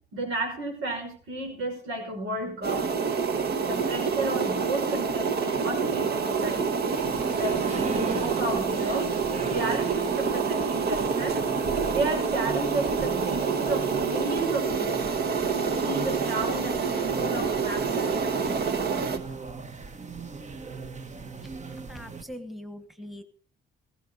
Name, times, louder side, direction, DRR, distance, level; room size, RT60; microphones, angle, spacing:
voice 1, 0.1-2.9 3.6-6.7 7.4-9.1 9.4-11.4 11.9-15.2 15.5-18.6, right 2 dB, 90° right, 1 dB, 6.0 m, -33 dB
sound 1, 2.6-19.2, right 5 dB, 55° right, 1.4 m, -27 dB
sound 2, 6.9-22.2, right 4 dB, 35° right, 1.2 m, -38 dB
voice 2, 21.4-23.2, left 1 dB, ahead, 8 dB, 1.5 m, -42 dB
15.0 x 15.0 x 4.0 m, 0.41 s
cardioid pair, 90°, 20 cm